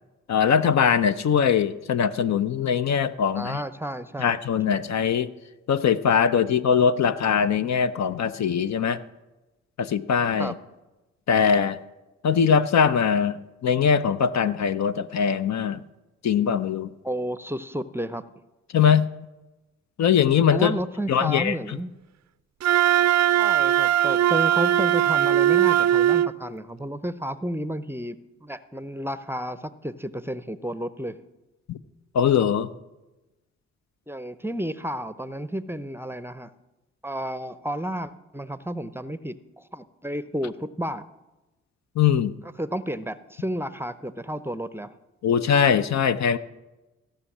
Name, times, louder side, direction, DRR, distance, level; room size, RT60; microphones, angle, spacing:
voice 1, 0.3-3.6 4.2-5.3 5.7-9.0 9.8-10.5 11.3-11.8 12.2-15.8 16.2-16.9 18.7-19.1 20.0-20.8 21.1-21.8 31.7-31.8 32.1-32.7 42.0-42.3 45.2-46.4, left 7 dB, 60° left, 12 dB, 0.6 m, -21 dB
voice 2, 3.3-4.4 10.4-10.5 17.0-18.2 20.5-21.9 23.3-31.2 34.1-36.5 37.0-41.0 42.6-44.9, right 1 dB, 5° right, 14 dB, 0.6 m, -32 dB
Wind instrument woodwind instrument, 22.6-26.3, right 11 dB, 60° right, 0.5 m, -20 dB
15.5 x 5.7 x 7.3 m, 1.1 s
supercardioid pair, 50°, 31 cm